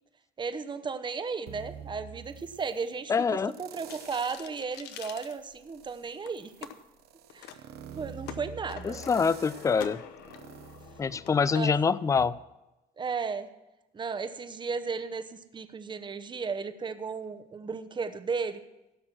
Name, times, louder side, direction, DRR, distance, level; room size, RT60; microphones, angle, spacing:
voice 1, 0.4-6.7 7.3-7.5 7.9-9.0 11.5-11.8 13.0-13.5 13.9-18.6, right 5 dB, 25° right, 11 dB, 0.9 m, -35 dB
sound 1, 1.5-2.9 3.5-4.6 5.0-11.7 12.2-12.3, right 9 dB, 70° right, 0.9 m, -47 dB
voice 2, 3.1-3.5 8.8-10.0 11.0-12.4, left 5 dB, 20° left, 18 dB, 0.4 m, -25 dB
Coffee Machine Capsules, 3.9-5.8 6.2-6.7 7.3-7.6 7.9-11.6, left 10 dB, 90° left, 0.9 m, -45 dB
16.0 x 6.2 x 6.1 m, 0.99 s
cardioid pair, 110°, 17 cm